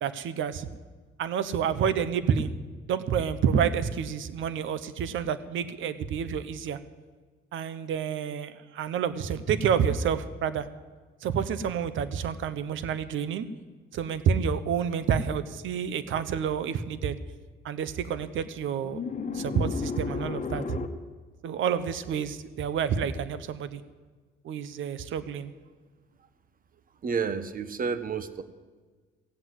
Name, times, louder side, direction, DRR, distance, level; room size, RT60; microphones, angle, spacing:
voice 1, 0.0-0.7 1.2-2.5 2.9-6.8 7.5-10.7 11.2-13.4 13.9-17.2 17.6-19.0 19.3-20.8 21.4-23.8 24.4-25.5, right 7 dB, 75° right, 13 dB, 1.0 m, -29 dB
sound 1, 15.0-15.1 18.7-20.9, left 5 dB, 40° left, 1.3 m, -33 dB
voice 2, 27.0-28.4, right 5 dB, 45° right, 13 dB, 1.1 m, -30 dB
16.0 x 7.9 x 9.5 m, 1.4 s
cardioid pair, 90°, 20 cm